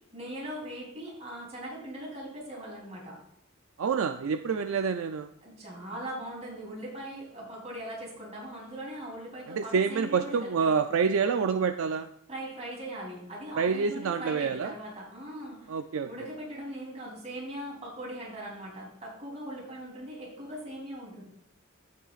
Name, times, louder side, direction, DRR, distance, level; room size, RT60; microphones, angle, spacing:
voice 1, 0.1-3.2 5.4-10.7 12.3-15.7 16.0-21.2, right 1 dB, 35° right, -3 dB, 3.3 m, -40 dB
voice 2, 3.8-5.3 9.5-12.1 13.6-14.7 15.7-16.1, right 5 dB, 75° right, 8 dB, 0.4 m, -27 dB
15.0 x 5.8 x 2.4 m, 0.70 s
head